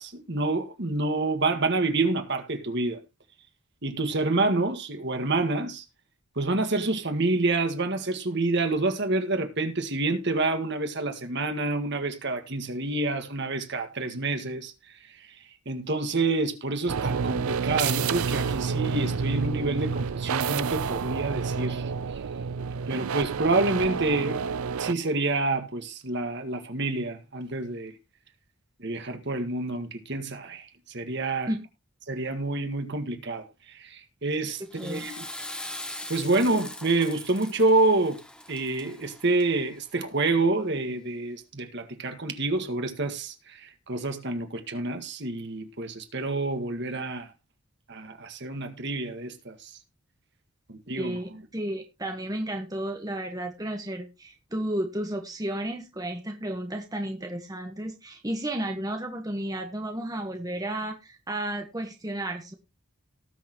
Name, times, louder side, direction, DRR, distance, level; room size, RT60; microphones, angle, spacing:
voice 1, 0.0-3.0 3.8-5.8 6.4-14.7 15.7-21.9 22.9-24.4 24.8-27.9 28.8-31.5 32.1-33.5 33.7-35.2 36.1-38.2 38.5-47.3 47.9-49.7 50.7-51.2, right 2 dB, 55° right, 1.8 m, -28 dB
sound 1, 16.9-24.9, right 6 dB, 90° right, 0.5 m, -29 dB
Water / Toilet flush, 34.5-39.8, left 1 dB, 5° left, 1.1 m, -41 dB
voice 2, 51.0-62.6, right 1 dB, 15° right, 1.3 m, -33 dB
18.5 x 6.7 x 3.0 m
head